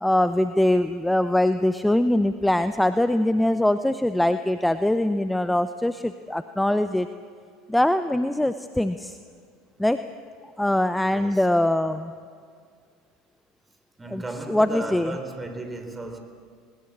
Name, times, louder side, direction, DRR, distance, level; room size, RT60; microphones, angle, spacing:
voice 1, 0.0-7.1 7.7-9.2 9.8-10.1 10.4-12.1 14.1-14.2 14.5-15.2, left 1 dB, 5° left, 0.7 m, -22 dB
voice 2, 11.0-11.5 14.0-16.2, right 2 dB, 20° right, 4.0 m, -35 dB
20.0 x 19.5 x 8.6 m
hypercardioid pair, 75°, 0 cm